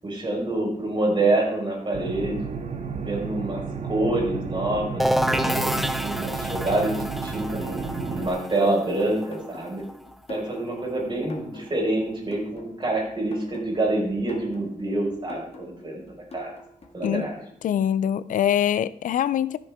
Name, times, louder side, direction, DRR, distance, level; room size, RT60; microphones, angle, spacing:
voice 1, 0.0-2.5 3.0-9.8 10.3-16.0 16.3-16.5 16.9-17.4, right 2 dB, 35° right, -2 dB, 4.9 m, -27 dB
sound 1, 1.9-8.3, right 5 dB, 55° right, 1.1 m, -32 dB
sound 2, 5.0-10.6, equal, ahead, 0.6 m, -28 dB
sound 3, 9.3-17.1, left 1 dB, 50° left, 1.8 m, -45 dB
voice 2, 17.6-19.6, left 10 dB, 85° left, 17 dB, 0.4 m, -23 dB
14.0 x 6.8 x 3.6 m, 0.72 s
cardioid pair, 95°, 13 cm